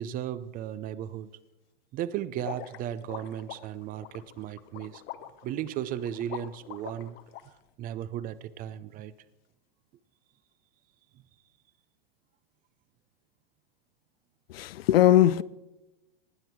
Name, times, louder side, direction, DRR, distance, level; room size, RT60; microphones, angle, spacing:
voice 1, 0.0-1.3 1.9-5.0 5.4-7.2 7.4-7.5 7.8-9.1, right 11 dB, 30° right, 0.6 m, -35 dB
sound 1, 2.4-7.4, left 12 dB, 35° left, 0.8 m, -43 dB
voice 2, 14.5-15.4, left 13 dB, 80° left, 0.5 m, -20 dB
19.0 x 7.7 x 4.6 m
hypercardioid pair, 125°, 29 cm